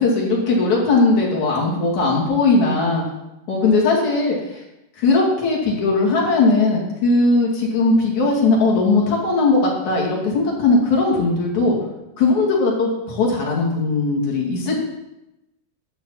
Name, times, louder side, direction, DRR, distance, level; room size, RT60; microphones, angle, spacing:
voice 1, 0.0-3.0 3.5-4.6 5.0-11.8 12.2-14.8, left 3 dB, 50° left, -3 dB, 3.5 m, -18 dB
12.0 x 6.1 x 7.5 m, 0.96 s
omnidirectional pair, 4.7 m